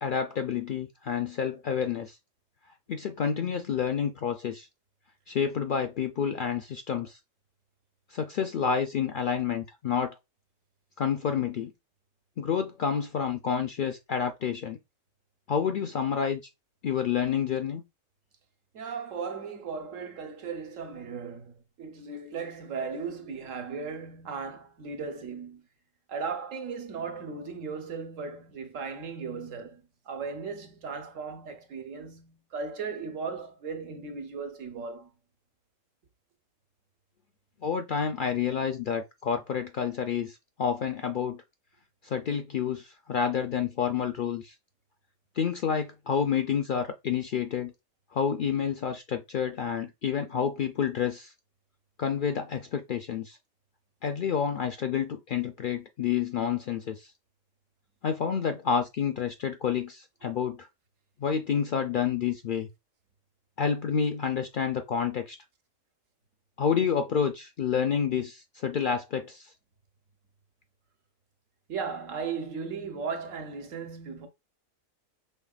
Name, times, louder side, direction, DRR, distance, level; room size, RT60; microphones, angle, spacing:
voice 1, 0.0-2.2 2.9-4.7 5.3-7.2 8.1-10.1 11.0-11.7 12.4-14.8 15.5-16.4 16.8-17.8 37.6-41.4 42.0-44.5 45.4-47.7 48.1-51.3 52.0-53.4 54.0-57.1 58.0-60.7 61.2-62.7 63.6-65.4 66.6-69.5, left 7 dB, 60° left, 0.5 m, -29 dB
voice 2, 18.7-25.6 26.1-35.1 71.7-74.3, right 5 dB, 80° right, 1.4 m, -37 dB
5.5 x 3.6 x 2.4 m
omnidirectional pair, 1.3 m